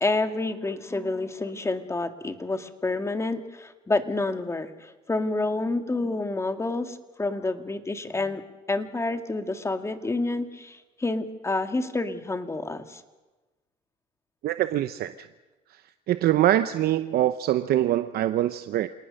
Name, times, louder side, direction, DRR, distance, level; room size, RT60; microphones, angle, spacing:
voice 1, 0.0-8.4 8.7-13.0, left 2 dB, 15° left, 8 dB, 1.9 m, -28 dB
voice 2, 14.4-15.3 15.7-15.8 16.1-18.9, right 13 dB, 65° right, 11 dB, 0.8 m, -24 dB
27.5 x 19.0 x 6.5 m, 1.2 s
cardioid pair, 110°, 17 cm